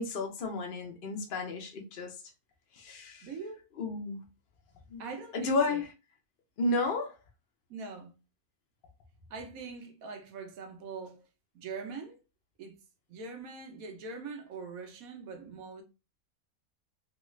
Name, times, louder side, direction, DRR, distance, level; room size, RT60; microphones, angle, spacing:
voice 1, 0.0-2.2 2.7-3.3 3.8-4.2 4.9-5.0 5.3-5.9 6.6-7.1, left 3 dB, 50° left, 0.7 m, -32 dB
voice 2, 3.2-3.7 5.0-5.8 7.7-8.1 9.3-11.2 11.5-12.2 12.6-12.8 13.1-15.8, right 4 dB, 75° right, 1.2 m, -42 dB
3.1 x 2.4 x 3.0 m
omnidirectional pair, 1.5 m